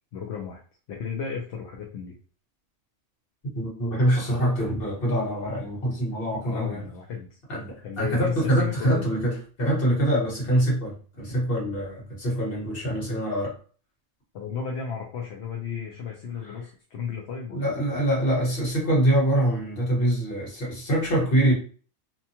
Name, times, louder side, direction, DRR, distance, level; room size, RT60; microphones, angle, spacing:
voice 1, 0.1-0.6 0.9-2.1 6.2-7.3 7.8-9.1 10.2-10.3 14.3-17.8, left 6 dB, 65° left, -1 dB, 0.9 m, -34 dB
voice 2, 3.5-6.8 7.5-13.5 16.4-16.5 17.5-21.5, right 1 dB, 50° left, -4 dB, 1.4 m, -24 dB
2.8 x 2.3 x 2.7 m, 0.40 s
omnidirectional pair, 1.3 m